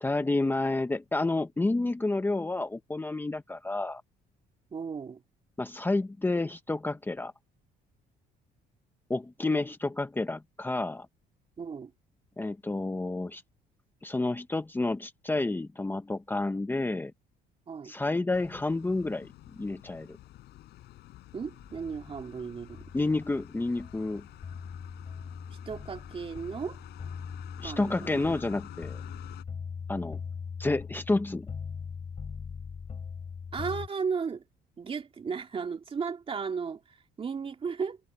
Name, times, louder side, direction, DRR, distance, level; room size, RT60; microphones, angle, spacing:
voice 1, 0.0-4.0 5.6-7.3 9.1-11.1 12.4-13.4 14.0-17.1 17.8-19.3 19.5-20.2 22.9-24.2 27.6-29.0 29.9-30.2 30.6-31.5, left 2 dB, 10° left, 1.0 m, -30 dB
voice 2, 4.7-5.2 9.4-9.6 11.6-11.9 17.7-17.9 21.3-22.9 25.7-26.8 27.6-28.2 33.5-34.4 34.8-38.0, right 5 dB, 35° right, 2.4 m, -35 dB
sound 1, 18.3-29.4, left 15 dB, 80° left, 6.5 m, -50 dB
sound 2, 21.6-33.9, left 6 dB, 35° left, 7.2 m, -41 dB
cardioid pair, 110°, 17 cm